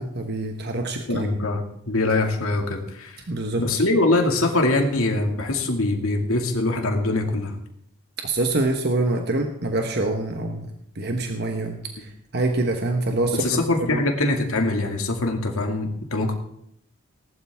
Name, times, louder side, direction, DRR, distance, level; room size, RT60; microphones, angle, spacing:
voice 1, 0.0-1.3 3.3-3.8 8.2-13.6 13.9-14.0, right 2 dB, 50° right, 4 dB, 1.2 m, -25 dB
voice 2, 1.1-3.1 3.6-7.5 13.4-16.3, left 2 dB, 80° left, 2 dB, 2.3 m, -23 dB
19.0 x 11.5 x 3.6 m, 0.73 s
head